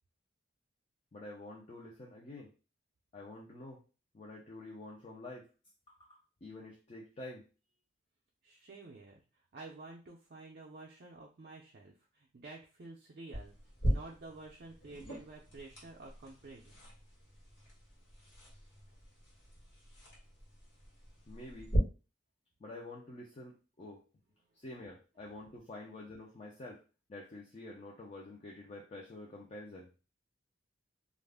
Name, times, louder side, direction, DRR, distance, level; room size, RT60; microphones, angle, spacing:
voice 1, 1.1-2.5 3.1-3.8 4.1-5.5 5.9-7.5 21.3-21.7 22.6-24.1 24.6-26.8 27.1-29.9, left 2 dB, 30° left, -2 dB, 0.4 m, -48 dB
voice 2, 8.4-9.2 9.5-13.5 13.8-16.8 24.4-24.5, right 3 dB, 50° right, -1 dB, 0.5 m, -50 dB
sound 1, 13.3-21.8, equal, 60° left, 1.2 m, -41 dB
2.4 x 2.1 x 3.4 m, 0.33 s
head